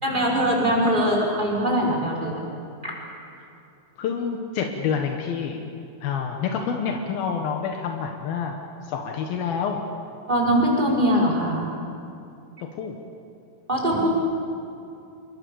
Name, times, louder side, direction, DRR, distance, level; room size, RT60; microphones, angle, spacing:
voice 1, 0.0-2.4 2.8-3.0 10.3-11.7 13.7-14.1, equal, 10° right, -2 dB, 5.2 m, -22 dB
voice 2, 4.0-5.6 6.0-9.8 12.7-13.0, left 6 dB, 85° left, 2 dB, 3.3 m, -28 dB
29.0 x 22.0 x 7.1 m, 2.6 s
omnidirectional pair, 4.1 m